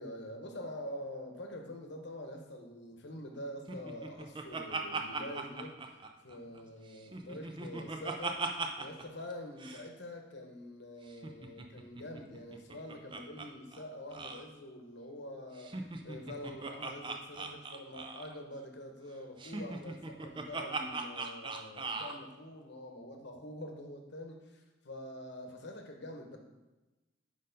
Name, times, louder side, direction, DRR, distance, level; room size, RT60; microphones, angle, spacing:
voice 1, 0.0-8.4 8.8-26.4, left 1 dB, 65° left, 3 dB, 0.9 m, -46 dB
Laughter, 3.7-6.6 6.9-9.0 9.3-9.4 9.6-9.8 11.1-13.5 13.7-13.8 14.1-14.4 15.6-18.4 19.4-22.2, right 3 dB, 25° right, 0.4 m, -39 dB
5.1 x 4.4 x 5.2 m, 1.1 s
head